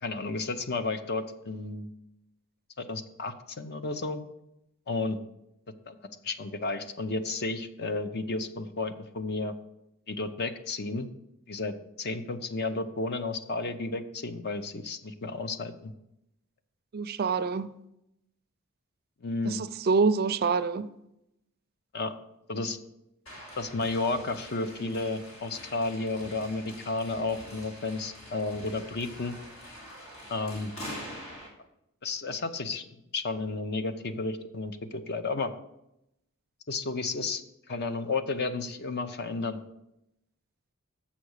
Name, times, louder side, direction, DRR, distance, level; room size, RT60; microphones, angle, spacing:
voice 1, 0.0-1.9 2.8-4.2 4.9-5.2 5.9-6.0 6.2-9.5 10.1-11.1 11.5-15.9 19.2-19.6 21.9-22.1 22.5-22.8 23.6-29.3 30.3-30.7 32.0-32.8 33.1-35.5 36.7-37.4 37.7-39.6, left 3 dB, 50° left, 0.6 m, -32 dB
voice 2, 16.9-17.7 19.5-20.9, right 4 dB, 45° right, 0.4 m, -26 dB
sound 1, 23.3-31.5, equal, 65° left, 3.1 m, -45 dB
7.2 x 5.8 x 6.4 m
head